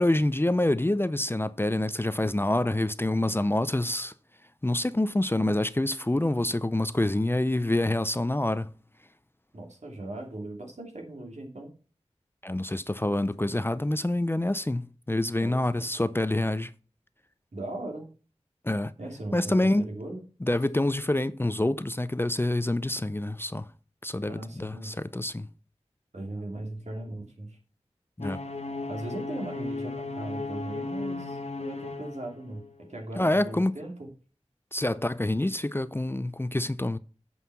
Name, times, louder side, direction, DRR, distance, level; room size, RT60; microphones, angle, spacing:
voice 1, 0.0-4.1 4.6-8.7 12.4-14.8 15.1-16.7 18.6-18.9 19.3-19.9 20.4-23.7 24.0-25.5 28.2-28.4 33.2-33.7 34.7-37.0, left 1 dB, 20° left, 0.5 m, -26 dB
voice 2, 9.5-11.7 15.4-15.6 17.5-18.1 19.0-20.2 24.3-24.9 26.1-27.6 28.9-32.6 32.9-34.1, right 1 dB, 75° right, 2.7 m, -38 dB
sound 1, 28.2-32.9, left 3 dB, 65° left, 1.3 m, -36 dB
8.4 x 5.6 x 5.7 m
wide cardioid pair, 55°, 12 cm